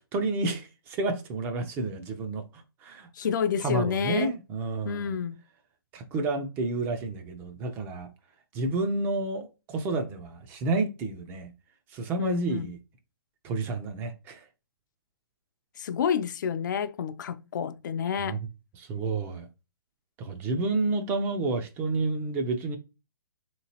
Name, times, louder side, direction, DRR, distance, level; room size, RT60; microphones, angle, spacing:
voice 1, 0.1-2.4 2.8-3.1 3.6-5.2 5.9-8.1 8.5-11.5 11.9-12.8 13.4-14.4 18.2-18.4 18.8-19.5 20.2-22.8, right 3 dB, 15° right, 0.4 m, -30 dB
voice 2, 3.1-4.3 4.8-5.4 12.2-12.7 15.8-18.4, left 7 dB, 55° left, 0.4 m, -29 dB
3.3 x 2.9 x 2.8 m
hypercardioid pair, 155°, 12 cm